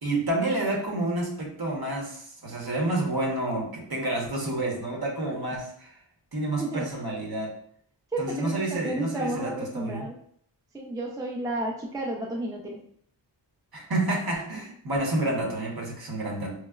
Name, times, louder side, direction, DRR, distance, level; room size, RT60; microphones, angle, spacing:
voice 1, 0.0-5.9 6.3-7.5 8.2-10.1 13.7-16.5, right 2 dB, 55° right, -2 dB, 1.0 m, -29 dB
voice 2, 8.1-10.1 10.7-12.8, right 1 dB, 10° right, 0 dB, 0.4 m, -32 dB
4.6 x 2.0 x 2.3 m, 0.63 s
wide cardioid pair, 75°, 46 cm